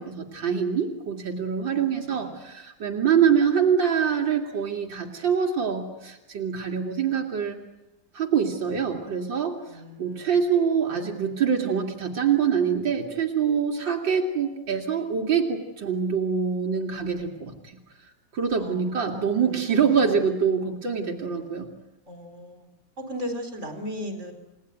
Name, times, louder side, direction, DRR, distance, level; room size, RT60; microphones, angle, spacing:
voice 1, 0.0-7.6 8.1-9.6 10.0-17.8 18.3-21.7, right 7 dB, 85° right, 2 dB, 3.2 m, -25 dB
voice 2, 1.7-2.3 9.7-10.3 18.6-20.0 21.4-21.5 22.1-22.6 23.0-24.3, equal, 40° right, 6 dB, 4.6 m, -37 dB
29.5 x 19.0 x 9.4 m, 1.0 s
omnidirectional pair, 2.0 m